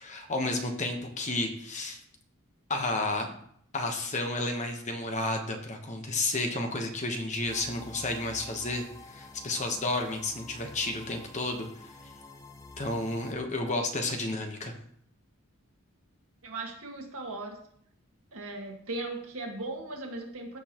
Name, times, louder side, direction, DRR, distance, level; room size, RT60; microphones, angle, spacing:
voice 1, 0.0-2.0 2.7-3.3 3.7-11.9 12.8-14.7, left 2 dB, 30° left, 4 dB, 1.1 m, -31 dB
sound 1, 7.5-13.3, left 3 dB, 15° left, 0.5 m, -49 dB
voice 2, 16.4-17.6 18.3-20.6, right 2 dB, 70° right, 1 dB, 1.8 m, -38 dB
15.0 x 5.4 x 3.0 m, 0.65 s
head